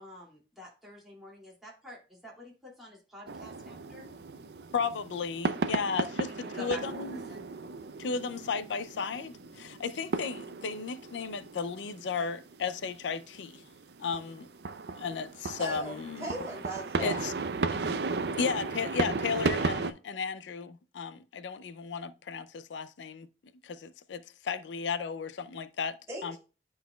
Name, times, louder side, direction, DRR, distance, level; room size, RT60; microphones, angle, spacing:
voice 1, 0.0-4.1 6.2-6.8 7.1-7.4, equal, ahead, 2.4 m, -48 dB
sound 1, 3.3-19.9, right 3 dB, 65° right, 0.5 m, -35 dB
voice 2, 4.7-7.2 8.0-13.6 14.0-14.5 15.0-16.3 17.0-17.3 18.4-23.3 23.6-26.0 26.2-26.4, left 5 dB, 90° left, 0.4 m, -34 dB
voice 3, 15.6-17.2 26.1-26.4, right 1 dB, 15° right, 3.1 m, -39 dB
11.5 x 4.0 x 2.3 m
head